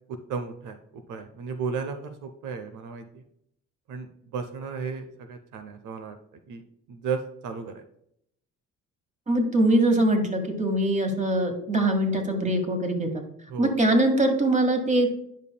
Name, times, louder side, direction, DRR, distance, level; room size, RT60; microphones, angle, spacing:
voice 1, 0.3-0.8 1.1-3.2 3.9-6.6 6.9-7.8 13.5-13.7, right 5 dB, 80° right, 7 dB, 0.8 m, -34 dB
voice 2, 9.3-13.2 13.6-15.1, right 1 dB, 25° right, 4 dB, 1.8 m, -22 dB
10.5 x 5.4 x 2.2 m, 0.74 s
cardioid pair, 90°, 30 cm